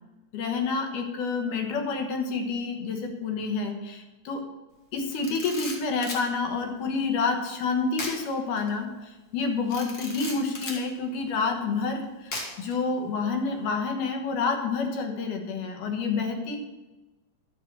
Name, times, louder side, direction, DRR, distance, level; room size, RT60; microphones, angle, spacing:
voice 1, 0.3-4.5 4.9-16.6, left 4 dB, 70° left, 3 dB, 2.7 m, -28 dB
Camera, 5.1-6.3 7.9-8.2 8.6-8.7 9.7-10.8 12.3-12.7, left 2 dB, 40° left, 1.4 m, -36 dB
11.0 x 6.0 x 6.5 m, 1.1 s
omnidirectional pair, 3.9 m